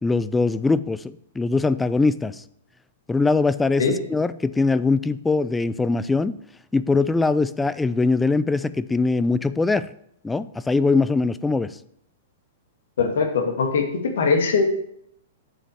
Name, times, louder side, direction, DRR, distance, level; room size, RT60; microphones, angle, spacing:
voice 1, 0.0-2.4 3.1-6.4 6.7-9.9 10.2-11.7, left 3 dB, 10° left, 15 dB, 0.4 m, -22 dB
voice 2, 13.0-14.7, left 5 dB, 70° left, 4 dB, 1.8 m, -21 dB
7.3 x 5.2 x 6.9 m, 0.72 s
hypercardioid pair, 115°, 0 cm